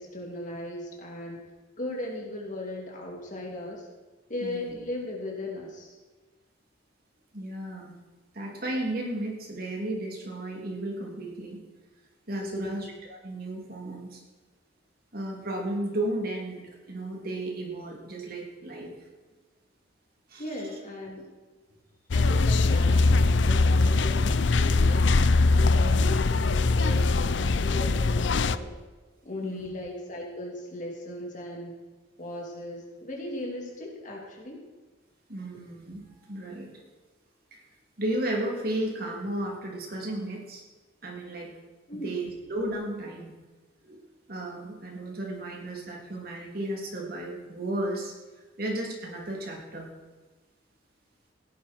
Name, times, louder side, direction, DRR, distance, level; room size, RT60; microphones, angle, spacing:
voice 1, 0.0-1.5 1.8-3.9 4.3-6.0 12.4-12.8 20.4-21.3 22.1-28.7 29.2-31.8 32.2-34.6 41.9-42.1, left 1 dB, 40° left, -1 dB, 3.1 m, -37 dB
voice 2, 4.4-4.7 7.3-8.0 8.3-11.6 12.3-14.2 15.1-16.6 16.9-18.9 20.3-20.4 25.8-26.0 29.4-29.7 35.3-36.7 37.5-37.6 38.0-40.6 41.0-41.5 41.9-43.3 43.8-44.0 44.3-48.1 48.6-49.9, right 1 dB, 50° right, -1 dB, 3.2 m, -34 dB
sound 1, 22.1-28.6, left 3 dB, 65° left, 0.5 m, -22 dB
16.5 x 11.0 x 4.6 m, 1.3 s
head